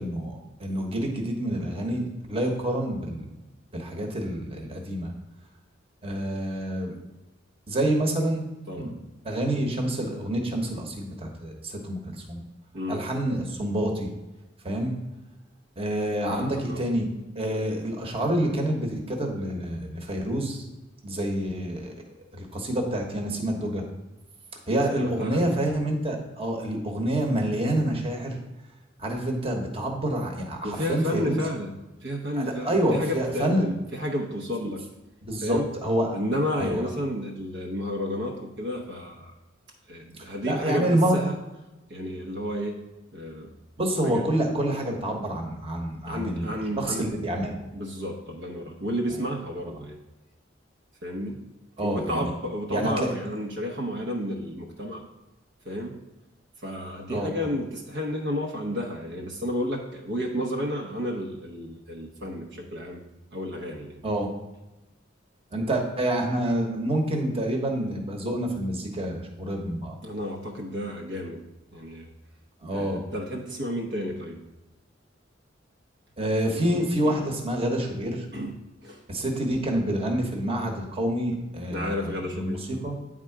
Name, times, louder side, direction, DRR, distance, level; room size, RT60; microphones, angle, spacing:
voice 1, 0.0-3.3 3.7-5.1 6.0-7.0 7.7-8.4 8.8-8.9 9.2-12.4 12.9-14.1 14.6-15.0 15.8-17.0 17.3-20.6 21.0-21.9 22.3-23.8 24.7-28.4 29.0-31.4 32.3-33.6 35.2-36.2 36.6-36.8 40.4-41.2 43.8-46.5 46.8-47.5 51.8-52.3 52.7-53.1 57.1-57.3 64.0-64.3 65.5-70.0 72.6-73.0 76.2-78.2 79.1-82.6 82.8-83.0, right 1 dB, 30° right, 1 dB, 1.2 m, -27 dB
voice 2, 16.3-16.8 24.9-25.6 30.6-31.7 32.0-34.8 35.4-35.7 36.1-39.3 39.9-41.4 41.9-42.8 43.1-43.6 44.0-44.2 46.0-47.1 47.7-50.0 51.0-51.5 51.8-55.0 55.6-56.0 56.6-63.0 63.3-64.0 70.0-71.4 71.7-72.1 72.7-74.4 76.5-77.3 78.3-79.0 81.7-82.6, equal, 60° right, 0 dB, 0.9 m, -32 dB
9.4 x 3.7 x 4.6 m, 1.0 s
head